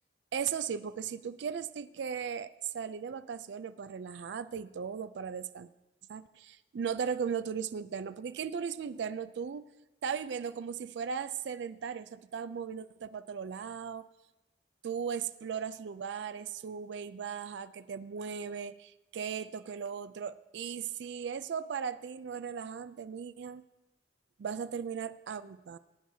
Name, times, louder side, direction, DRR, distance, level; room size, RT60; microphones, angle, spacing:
voice 1, 0.3-5.7 6.1-9.6 10.0-14.1 14.8-23.6 24.4-25.8, right 7 dB, 80° right, 13 dB, 0.4 m, -37 dB
19.5 x 9.2 x 2.7 m, 0.98 s
head